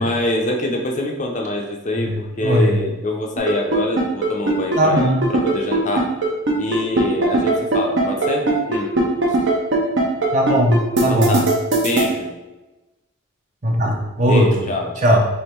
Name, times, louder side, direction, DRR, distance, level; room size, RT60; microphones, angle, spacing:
voice 1, 0.0-6.1 6.6-8.9 9.3-9.4 11.1-11.5 11.7-12.3 14.2-15.1, left 2 dB, 35° left, 1 dB, 0.6 m, -25 dB
voice 2, 2.4-2.8 4.8-5.2 10.3-11.4 13.6-14.7 15.0-15.2, equal, 35° right, 0 dB, 0.7 m, -18 dB
sound 1, 3.4-12.0, right 2 dB, 60° right, 0.9 m, -18 dB
3.5 x 3.3 x 4.4 m, 1.0 s
head